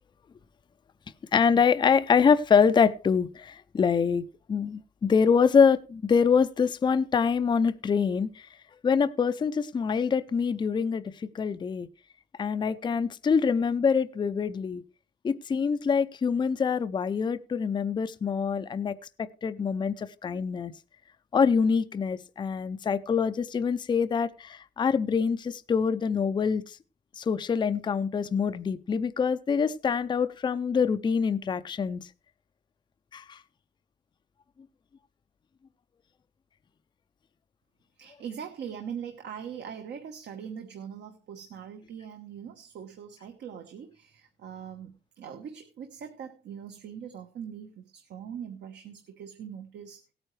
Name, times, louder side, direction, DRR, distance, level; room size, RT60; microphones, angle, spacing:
voice 1, 1.3-4.2 4.5-8.3 8.8-11.0 11.3-11.9 12.4-14.8 15.2-20.7 21.3-26.6 27.2-32.0 33.1-33.4, left 6 dB, 25° left, 0.4 m, -25 dB
voice 2, 38.0-50.0, right 8 dB, 70° right, 1.1 m, -41 dB
17.0 x 9.0 x 3.2 m
cardioid pair, 135°, 19 cm